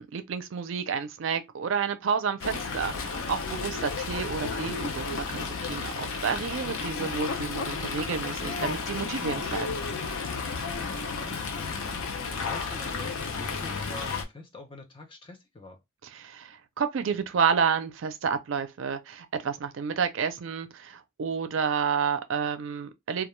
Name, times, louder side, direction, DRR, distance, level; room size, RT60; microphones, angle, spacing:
voice 1, 0.0-9.8 16.1-23.3, right 6 dB, 70° right, 0.4 m, -30 dB
Fowl, 2.4-14.2, left 4 dB, 80° left, 0.6 m, -33 dB
voice 2, 6.9-7.2 10.5-15.8, left 2 dB, 25° left, 0.5 m, -46 dB
2.3 x 2.2 x 3.0 m
head